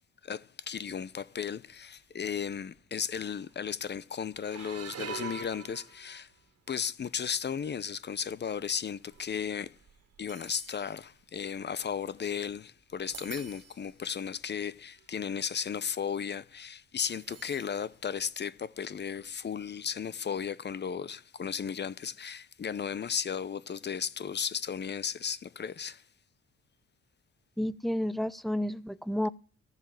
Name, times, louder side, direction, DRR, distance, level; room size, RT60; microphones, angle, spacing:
voice 1, 0.2-6.3 6.7-9.7 10.2-26.0, left 7 dB, 35° left, 0.7 m, -35 dB
sound 1, 1.1-1.5 1.8-2.0 2.8-2.9 3.1-3.6 4.3-6.5 7.1-7.4 8.1-12.6 12.9-13.9 14.6-14.7 15.0-15.3 17.1-17.9 18.2-18.3 19.6-19.7, right 7 dB, 55° right, 1.9 m, -46 dB
voice 2, 27.6-29.3, left 1 dB, ahead, 0.6 m, -31 dB
14.0 x 7.3 x 7.6 m
cardioid pair, 90°, 30 cm